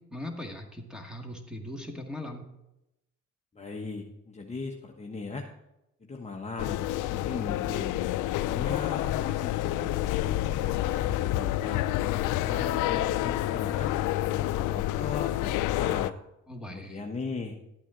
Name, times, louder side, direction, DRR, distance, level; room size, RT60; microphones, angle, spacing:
voice 1, 0.1-2.5 16.5-17.0, left 1 dB, 5° right, 2 dB, 2.0 m, -39 dB
voice 2, 3.5-5.5 6.0-8.0 8.4-11.9 12.4-13.9 14.3-16.1 16.7-17.6, left 4 dB, 20° left, 0 dB, 1.1 m, -38 dB
sound 1, 6.6-16.1, left 14 dB, 85° left, 0.5 m, -28 dB
12.5 x 8.5 x 3.9 m, 0.88 s
cardioid pair, 90°, 30 cm